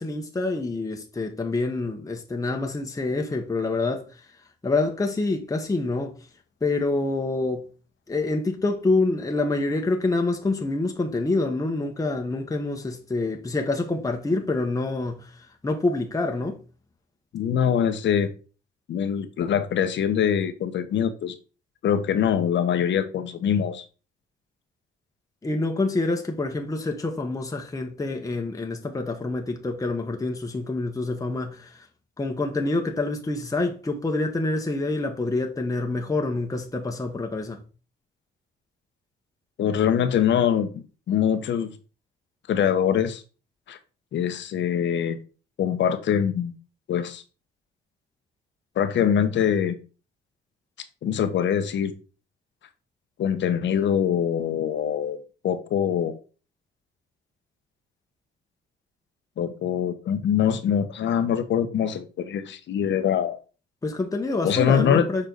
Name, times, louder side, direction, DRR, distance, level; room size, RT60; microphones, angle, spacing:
voice 1, 0.0-4.3 4.6-6.2 6.6-7.7 8.1-16.6 25.4-31.9 32.2-37.6 63.8-65.3, left 2 dB, 15° left, 1.1 m, -27 dB
voice 2, 17.3-18.3 18.9-21.4 21.8-23.8 39.6-41.8 42.5-43.2 43.7-43.8 44.1-45.2 45.6-46.5 46.9-47.2 48.8-49.8 51.0-51.9 53.2-56.1 59.4-63.4 64.4-65.1, left 8 dB, 65° left, 1.0 m, -23 dB
6.7 x 4.4 x 4.0 m
cardioid pair, 90°, 20 cm